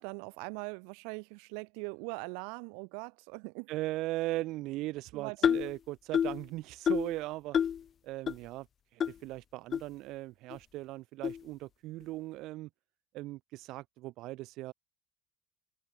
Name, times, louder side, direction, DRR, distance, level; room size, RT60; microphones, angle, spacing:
voice 1, 0.0-3.7 5.1-5.6, right 40 dB or more, 85° right, 3.9 m, -41 dB
voice 2, 3.7-7.6 8.0-8.7 8.9-12.7 13.1-14.7, right 18 dB, 60° right, 2.5 m, -38 dB
sound 1, 5.4-5.7 6.1-6.4 6.9-7.1 7.5-7.8 8.3-8.4 9.0-9.1 9.7-9.8 10.5-10.6 11.2-11.4, left 8 dB, 30° left, 0.4 m, -28 dB
cardioid pair, 150°, 0 cm